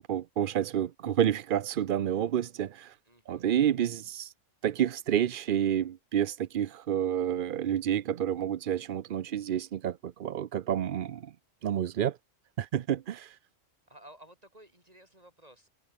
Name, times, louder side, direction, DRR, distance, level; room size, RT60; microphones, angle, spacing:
voice 1, 0.1-3.0 3.3-4.3 4.6-11.3 11.6-12.2 12.6-13.4, right 10 dB, 55° right, 0.6 m, -29 dB
voice 2, 3.1-3.5 13.9-15.7, right 1 dB, 30° right, 8.2 m, -54 dB
omnidirectional pair, 1.3 m